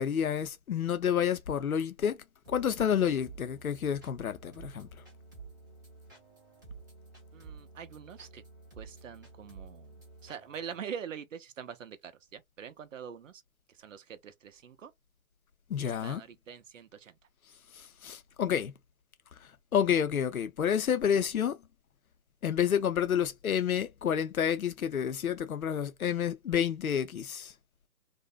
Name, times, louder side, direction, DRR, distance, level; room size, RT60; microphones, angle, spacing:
voice 1, 0.0-2.2 2.5-4.9 15.7-16.2 17.7-18.7 19.4-21.6 22.4-27.5, left 8 dB, 75° left, 0.6 m, -29 dB
sound 1, 2.4-10.8, right 4 dB, 15° right, 0.5 m, -51 dB
voice 2, 7.3-8.4 8.8-13.4 13.7-14.9 15.8-17.2, right 7 dB, 60° right, 0.6 m, -44 dB
2.5 x 2.1 x 2.4 m
figure-of-eight pair, 140°, 43 cm